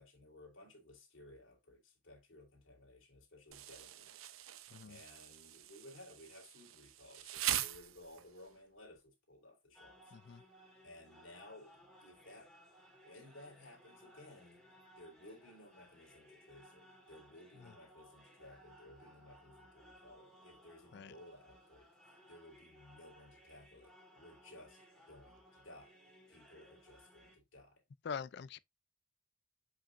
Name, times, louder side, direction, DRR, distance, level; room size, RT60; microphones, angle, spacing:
voice 1, 0.0-4.1 4.8-10.4 10.8-12.5 13.0-14.6 15.0-26.0 26.3-27.8, left 1 dB, 70° left, 3.2 m, -58 dB
Insect, 3.5-8.5, right 12 dB, 80° right, 0.7 m, -42 dB
sound 1, 9.7-27.4, equal, ahead, 2.4 m, -62 dB
voice 2, 10.1-10.4 20.9-21.1 28.0-28.6, left 6 dB, 50° left, 0.4 m, -44 dB
7.7 x 5.8 x 2.5 m
head